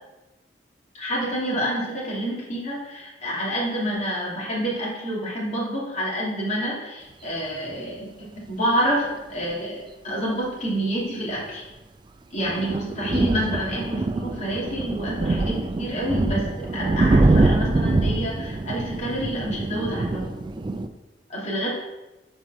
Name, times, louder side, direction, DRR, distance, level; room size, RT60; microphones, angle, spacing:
voice 1, 0.9-11.6 12.3-20.3 21.3-21.7, equal, 40° left, -5 dB, 2.7 m, -28 dB
sound 1, 12.4-20.9, right 2 dB, 25° right, 0.3 m, -24 dB
5.7 x 4.6 x 6.4 m, 1.1 s
head